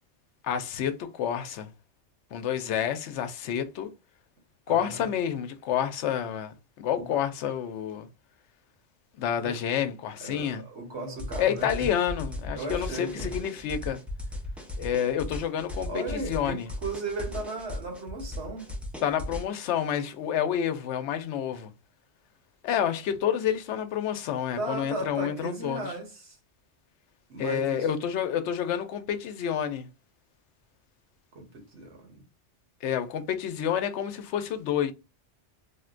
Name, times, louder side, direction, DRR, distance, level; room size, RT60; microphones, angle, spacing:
voice 1, 0.4-1.7 2.3-3.9 4.7-8.1 9.2-10.6 11.4-14.0 14.8-16.7 19.0-21.7 22.6-25.9 27.4-29.9 32.8-34.9, left 9 dB, 85° left, 0.9 m, -29 dB
voice 2, 4.7-5.0 7.0-7.1 9.4-9.6 10.2-11.9 12.5-13.3 15.9-18.7 24.6-26.4 27.3-27.9 31.3-32.2, right 2 dB, 75° right, 1.4 m, -36 dB
sound 1, 11.2-19.4, left 1 dB, ahead, 0.4 m, -37 dB
3.8 x 2.1 x 2.4 m
omnidirectional pair, 1.1 m